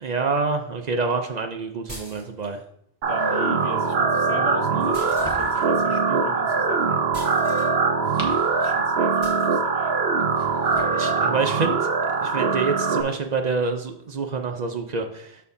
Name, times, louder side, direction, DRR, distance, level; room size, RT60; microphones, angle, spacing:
voice 1, 0.0-2.6 10.9-11.9 12.2-15.5, right 4 dB, 50° right, 5 dB, 0.6 m, -27 dB
sound 1, 1.9-2.6 4.9-5.7 7.1-7.7 9.2-9.5, equal, 20° right, 3.2 m, -42 dB
sound 2, 3.0-13.0, right 5 dB, 75° right, 1.0 m, -22 dB
voice 2, 3.1-7.1 8.6-10.0, left 4 dB, 85° left, 5 dB, 1.2 m, -37 dB
sound 3, 4.8-5.8 7.8-8.9 10.2-11.1, left 2 dB, 30° left, 1.1 m, -39 dB
12.5 x 4.3 x 2.7 m, 0.72 s
omnidirectional pair, 1.1 m